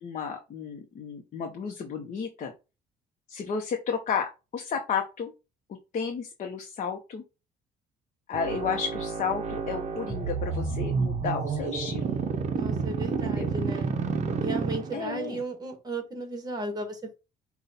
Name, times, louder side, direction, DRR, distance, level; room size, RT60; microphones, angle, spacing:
voice 1, 0.0-2.5 3.3-5.3 5.9-7.2 8.3-12.1 13.2-13.5 14.9-15.4, left 6 dB, 45° left, 0.8 m, -32 dB
sound 1, 8.3-15.3, right 5 dB, 45° right, 0.7 m, -30 dB
voice 2, 12.5-13.9 14.4-17.1, right 2 dB, 25° right, 1.3 m, -35 dB
5.3 x 2.3 x 4.1 m
cardioid pair, 110°, 17 cm